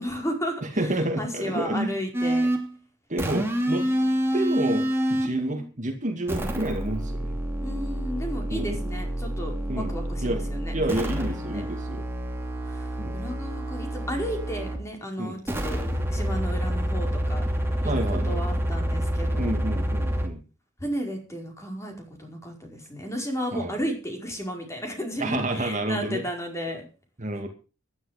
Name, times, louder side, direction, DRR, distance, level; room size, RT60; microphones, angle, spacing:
voice 1, 0.0-2.5 3.5-4.2 5.2-5.7 7.6-11.6 12.7-15.8 16.1-17.5 17.8-19.6 20.8-21.9 22.2-26.8, equal, 15° left, 2 dB, 4.9 m, -34 dB
voice 2, 0.6-1.9 3.1-3.9 4.3-7.4 8.5-8.8 9.7-9.9 10.2-10.4 10.7-12.0 13.0-13.2 15.2-15.4 17.8-18.5 19.4-20.4 23.5-23.8 25.2-26.2 27.2-27.5, right 1 dB, 40° right, 4 dB, 2.3 m, -29 dB
sound 1, 2.1-2.7 3.2-5.4 6.3-14.9 15.5-20.3, equal, 10° right, 2.6 m, -28 dB
15.5 x 11.5 x 5.2 m, 0.34 s
head